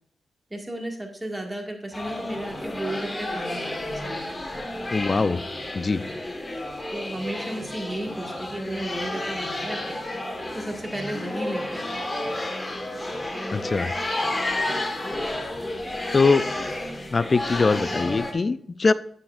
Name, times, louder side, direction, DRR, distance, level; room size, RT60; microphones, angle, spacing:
voice 1, 0.5-4.3 6.9-10.0 10.5-11.8 14.7-14.9, right 1 dB, 20° right, 2 dB, 1.9 m, -34 dB
sound 1, 1.9-18.3, left 1 dB, 20° left, 1.5 m, -31 dB
voice 2, 4.9-5.4 5.7-6.0 13.5-13.9 16.1-16.4 17.1-18.9, left 4 dB, 40° left, 15 dB, 0.4 m, -22 dB
8.7 x 7.5 x 2.5 m, 0.64 s
cardioid pair, 65°, 0 cm